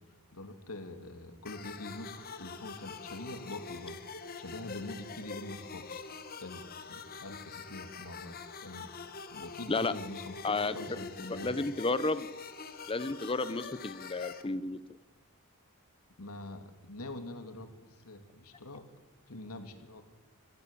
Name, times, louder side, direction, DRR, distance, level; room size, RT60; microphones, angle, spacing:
voice 1, 0.3-4.0 4.4-6.0 6.4-8.9 9.3-11.5 16.2-18.8 19.3-20.0, left 2 dB, 90° left, 7 dB, 2.9 m, -44 dB
sound 1, 1.5-14.4, left 5 dB, 45° left, 1.7 m, -45 dB
voice 2, 10.4-11.0 11.4-12.3 12.9-14.8, left 3 dB, 25° left, 15 dB, 0.7 m, -32 dB
25.0 x 15.5 x 8.5 m, 1.2 s
head